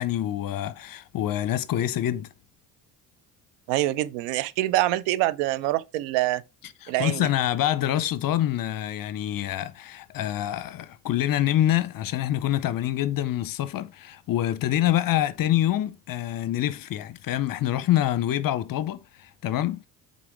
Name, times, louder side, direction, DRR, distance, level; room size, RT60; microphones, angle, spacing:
voice 1, 0.0-2.3 6.8-19.9, left 12 dB, 50° left, 0.7 m, -26 dB
voice 2, 3.7-6.4 6.9-7.3, right 16 dB, 75° right, 0.7 m, -25 dB
6.1 x 4.2 x 4.6 m
hypercardioid pair, 65°, 45 cm